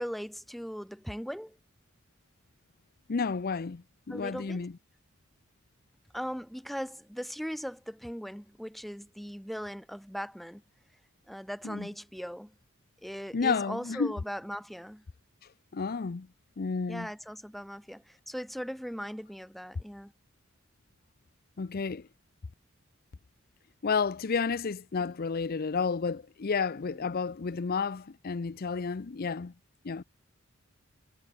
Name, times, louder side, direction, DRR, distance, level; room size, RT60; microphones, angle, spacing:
voice 1, 0.0-1.6 4.1-4.7 6.1-10.6 11.3-12.5 13.0-15.0 16.9-20.1 26.9-27.0, equal, ahead, 1.4 m, -39 dB
voice 2, 3.1-4.7 11.6-11.9 13.3-14.1 15.7-16.3 16.6-17.1 21.6-22.1 23.8-29.5 29.8-30.0, left 5 dB, 45° left, 0.5 m, -31 dB
head